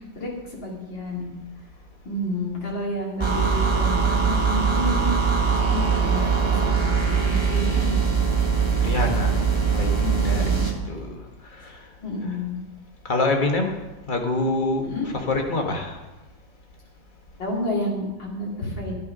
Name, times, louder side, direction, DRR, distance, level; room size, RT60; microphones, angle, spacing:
voice 1, 0.2-1.3 2.0-5.1 5.7-8.0 10.0-10.7 12.0-12.6 14.8-15.1 17.4-18.9, left 1 dB, 70° left, -3 dB, 3.6 m, -30 dB
sound 1, 3.2-10.8, right 5 dB, 15° right, 1.2 m, -21 dB
voice 2, 8.8-11.2 11.5-11.8 13.0-13.8 14.1-16.0, left 2 dB, 25° left, 2 dB, 1.5 m, -26 dB
11.0 x 10.5 x 5.3 m, 1.0 s
omnidirectional pair, 2.1 m